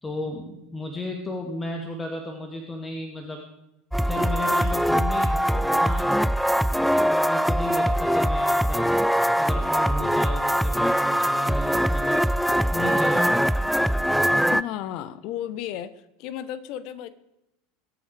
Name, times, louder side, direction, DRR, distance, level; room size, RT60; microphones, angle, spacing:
voice 1, 0.0-3.4 4.0-6.1 7.1-8.9 9.3-12.2 12.7-13.5, left 1 dB, 15° left, 3 dB, 2.1 m, -34 dB
sound 1, 3.9-14.6, equal, ahead, 0.4 m, -22 dB
voice 2, 14.5-15.9 16.2-17.1, left 11 dB, 50° left, 15 dB, 1.1 m, -33 dB
22.5 x 9.0 x 4.9 m, 0.87 s
figure-of-eight pair, 75°, 0 cm